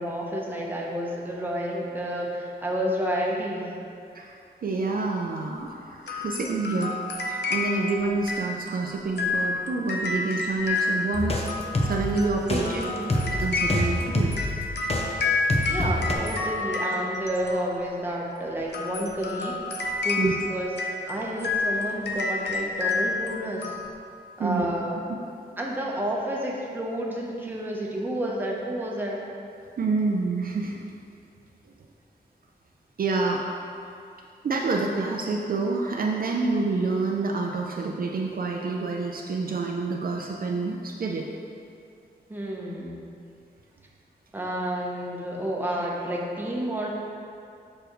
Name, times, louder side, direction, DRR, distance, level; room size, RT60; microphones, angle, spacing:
voice 1, 0.0-3.7 12.5-13.1 15.7-19.5 20.0-20.7 21.1-23.8 24.4-25.0 25.6-29.2 42.3-43.0 44.3-46.9, right 1 dB, 10° right, -3 dB, 0.9 m, -30 dB
voice 2, 4.6-7.0 7.2-11.5 11.8-12.8 13.3-14.4 20.2-20.3 24.4-24.7 29.8-30.8 33.0-33.4 34.4-41.3, right 3 dB, 55° right, 0 dB, 0.5 m, -27 dB
sound 1, 6.1-18.0 18.6-23.9, left 3 dB, 70° left, 0.6 m, -30 dB
sound 2, 11.1-15.0 15.5-16.1, left 1 dB, 35° left, 0.7 m, -27 dB
6.9 x 6.3 x 3.1 m, 2.5 s
wide cardioid pair, 160°, 18 cm